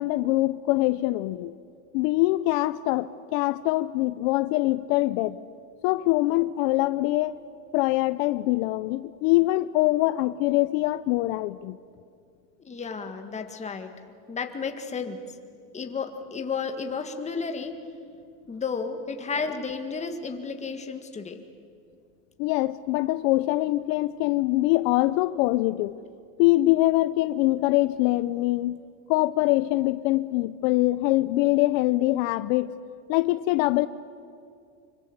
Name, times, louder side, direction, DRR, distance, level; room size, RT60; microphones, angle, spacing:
voice 1, 0.0-1.6 1.9-5.4 5.8-7.4 7.7-11.8 22.4-25.9 26.4-28.8 29.1-32.7 33.1-33.9, left 18 dB, 70° left, 15 dB, 0.7 m, -23 dB
voice 2, 12.6-13.9 14.3-15.2 15.7-17.8 18.5-21.4, left 5 dB, 15° left, 6 dB, 1.9 m, -32 dB
25.5 x 24.0 x 8.2 m, 2.3 s
cardioid pair, 150°, 39 cm